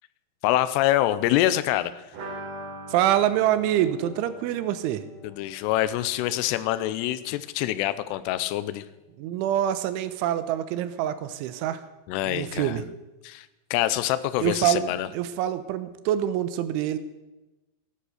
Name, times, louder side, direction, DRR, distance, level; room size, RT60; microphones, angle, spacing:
voice 1, 0.4-2.0 5.2-8.8 12.1-12.8 13.2-15.1, left 14 dB, 80° left, 13 dB, 2.5 m, -25 dB
sound 1, 2.1-7.7 8.0-8.1 8.4-8.5, right 1 dB, 70° right, 5.0 m, -43 dB
voice 2, 2.9-5.1 9.2-11.8 12.2-12.8 14.4-14.8 15.1-17.0, right 11 dB, 85° right, 12 dB, 3.3 m, -25 dB
15.0 x 11.5 x 6.6 m, 1.1 s
omnidirectional pair, 5.5 m